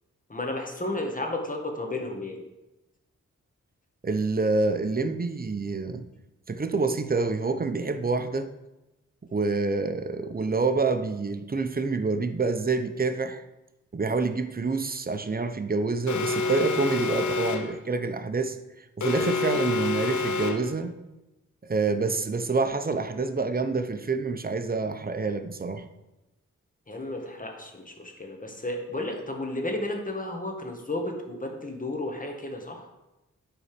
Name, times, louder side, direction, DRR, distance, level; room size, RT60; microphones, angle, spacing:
voice 1, 0.3-2.4 26.9-32.9, left 2 dB, 25° left, 1.9 m, -33 dB
voice 2, 4.0-6.0 6.5-8.5 9.3-13.4 13.9-20.9 21.6-25.8, right 3 dB, 30° right, 0.8 m, -27 dB
Alarm, 16.1-17.8 19.0-20.8, left 3 dB, 70° left, 0.9 m, -28 dB
10.5 x 4.1 x 5.2 m
cardioid pair, 45°, 31 cm